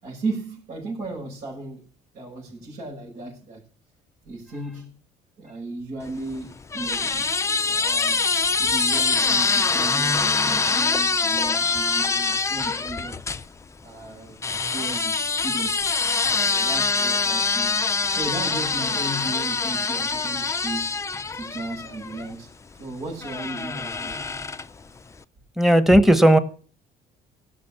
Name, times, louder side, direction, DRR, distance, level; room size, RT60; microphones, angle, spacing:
voice 1, 0.0-1.8 2.1-3.7 4.2-4.9 5.4-8.2 8.6-13.2 13.8-14.4 14.7-15.9 16.4-17.8 18.1-20.9 21.3-22.5 22.8-24.2, right 2 dB, 75° right, 6.7 m, -35 dB
sound 1, 6.1-13.4 14.4-22.3 23.2-24.8, left 4 dB, 15° left, 0.5 m, -24 dB
voice 2, 25.6-26.4, right 1 dB, ahead, 1.2 m, -15 dB
17.0 x 6.3 x 7.3 m
cardioid pair, 110°, 17 cm